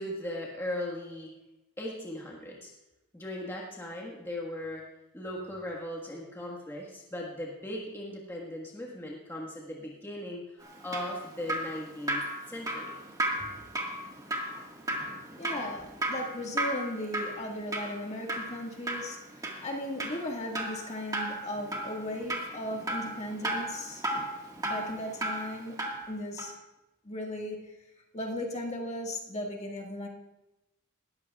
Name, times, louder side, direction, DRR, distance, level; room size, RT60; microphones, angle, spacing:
voice 1, 0.0-1.3 1.8-2.7 3.1-4.8 5.1-12.9, left 1 dB, 10° left, -3 dB, 1.6 m, -38 dB
Drip, 10.6-26.1 26.4-26.5, right 1 dB, 15° right, 1.7 m, -35 dB
voice 2, 15.3-19.2 19.6-24.0 24.6-25.8 26.1-26.5 27.0-27.7 28.1-30.1, left 1 dB, 30° left, 0 dB, 1.8 m, -36 dB
19.5 x 13.5 x 2.4 m, 0.98 s
head